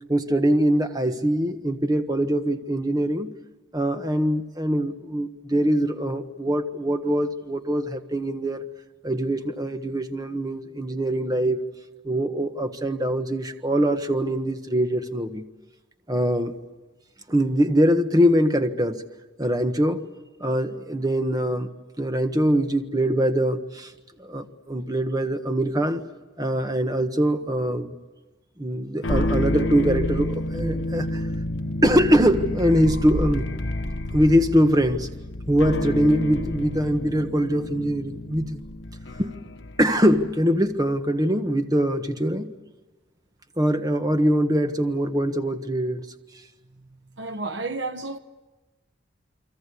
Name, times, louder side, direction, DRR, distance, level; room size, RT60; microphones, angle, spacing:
voice 1, 0.1-3.3 3.7-8.6 9.0-11.6 12.0-15.4 16.1-16.5 17.3-19.0 19.4-20.0 20.4-21.7 22.0-23.9 24.2-26.0 26.4-27.9 28.6-31.2 31.8-33.5 34.1-35.1 35.5-38.6 39.2-39.3 39.8-42.5 43.6-46.0, equal, 20° right, 1.4 m, -23 dB
sound 1, 29.0-40.4, left 1 dB, 75° left, 1.3 m, -29 dB
voice 2, 47.2-48.2, right 3 dB, 65° right, 1.1 m, -31 dB
29.5 x 23.5 x 8.4 m
head